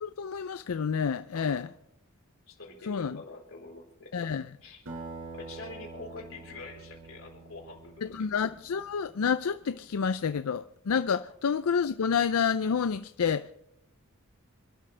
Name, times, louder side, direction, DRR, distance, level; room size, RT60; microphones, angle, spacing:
voice 1, 0.0-1.7 2.9-3.2 4.1-4.4 8.0-13.5, left 6 dB, 90° left, 0.5 m, -29 dB
voice 2, 1.3-1.7 2.5-4.2 4.6-4.8 5.3-8.3, left 3 dB, 65° left, 4.3 m, -45 dB
Acoustic guitar, 4.9-9.7, right 3 dB, 65° right, 4.7 m, -46 dB
26.5 x 12.0 x 3.3 m
head